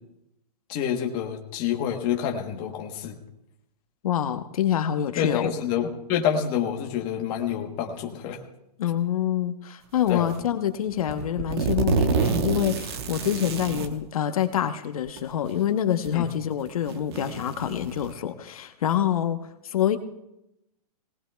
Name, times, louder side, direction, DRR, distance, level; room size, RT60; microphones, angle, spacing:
voice 1, 0.7-3.2 5.2-8.4 10.1-10.3 16.1-16.3, left 8 dB, 25° left, 2 dB, 1.1 m, -27 dB
voice 2, 4.0-5.5 8.8-20.0, left 10 dB, 65° left, 8 dB, 0.9 m, -26 dB
sound 1, 10.1-10.4 11.0-13.9 15.1-15.2 16.0-16.1 16.7-18.1, right 5 dB, 40° right, 1.0 m, -28 dB
26.0 x 18.5 x 2.3 m, 0.86 s
hypercardioid pair, 170°, 20 cm